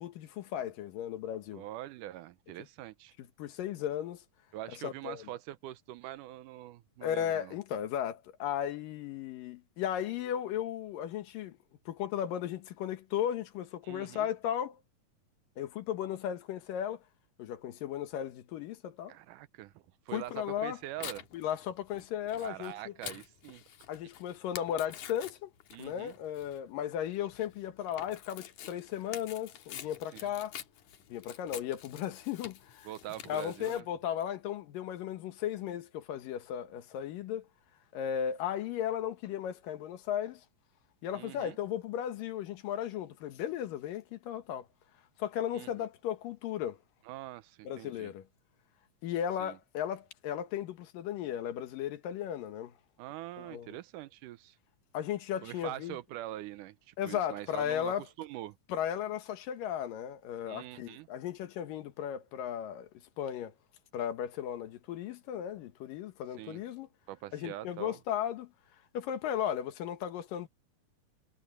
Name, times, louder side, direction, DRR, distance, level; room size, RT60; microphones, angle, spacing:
voice 1, 0.0-1.6 3.4-4.2 4.8-5.2 7.0-11.6 11.9-14.8 15.6-17.0 17.4-19.2 20.1-20.8 21.3-22.9 23.9-25.5 25.8-30.6 31.1-32.9 33.3-37.5 37.9-40.4 41.0-44.7 45.2-46.8 47.6-48.2 49.0-52.7 53.4-53.8 54.9-56.0 57.0-58.0 58.7-62.9 63.2-63.5 63.9-66.9 67.3-68.5 68.9-70.5, left 10 dB, 85° left, 3.0 m, -35 dB
voice 2, 1.5-3.1 4.5-7.5 13.8-14.3 19.1-21.3 22.4-23.6 25.7-26.1 30.1-30.3 32.8-33.9 41.1-41.6 45.5-45.9 47.1-48.1 49.4-49.6 53.0-54.6 55.4-58.6 60.5-61.1 66.4-66.6 67.1-68.0, right 15 dB, 80° right, 2.1 m, -44 dB
Tearing, 20.3-33.8, left 10 dB, 70° left, 2.8 m, -48 dB
omnidirectional pair, 3.8 m